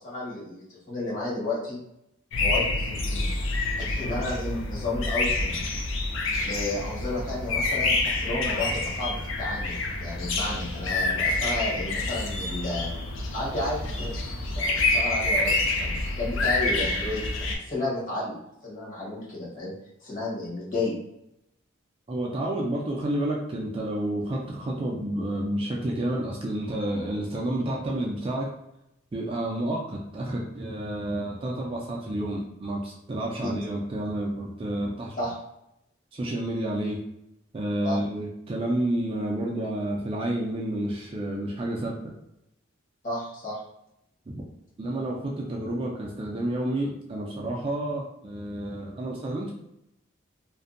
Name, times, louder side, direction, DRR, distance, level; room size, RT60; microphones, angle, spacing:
voice 1, 0.0-1.8 2.4-3.3 3.8-5.6 6.4-12.9 13.3-14.1 14.5-17.2 17.5-18.4 18.6-19.7 20.0-20.9 33.4-33.5 35.2-35.3 37.8-38.0 43.0-43.6, left 2 dB, 40° left, -6 dB, 0.9 m, -32 dB
sound 1, 2.3-17.6, left 2 dB, 80° left, 0.4 m, -27 dB
voice 2, 22.1-28.5 29.1-35.2 36.1-37.0 37.5-42.1 44.3-44.4 44.8-49.5, right 1 dB, 25° right, -2 dB, 0.3 m, -30 dB
2.6 x 2.2 x 2.4 m, 0.82 s
head